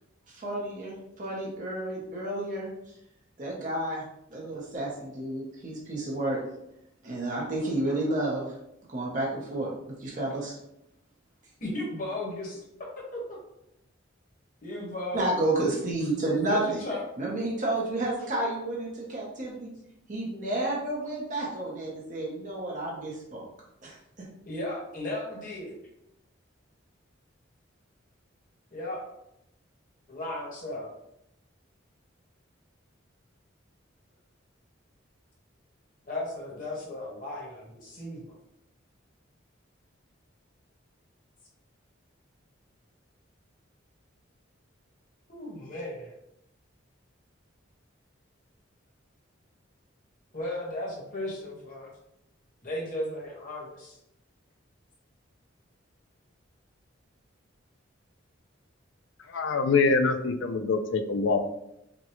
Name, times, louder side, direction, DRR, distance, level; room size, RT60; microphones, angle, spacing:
voice 1, 0.4-2.7 3.4-4.0 4.3-6.4 7.0-8.4 8.9-9.7 10.0-10.5 15.1-16.8 17.2-19.7 20.1-23.4 23.8-23.9, right 1 dB, 40° right, -4 dB, 0.8 m, -30 dB
voice 2, 11.6-12.6 13.0-13.4 14.6-15.4 16.5-17.0 17.4-17.5 24.4-25.8 28.7-29.0 30.1-30.9 36.0-38.2 45.3-46.1 50.3-51.9 52.6-54.0, left 1 dB, 40° left, -3 dB, 1.2 m, -35 dB
voice 3, 59.3-61.4, left 4 dB, 70° left, 7 dB, 0.4 m, -24 dB
5.2 x 2.2 x 3.0 m, 0.81 s
head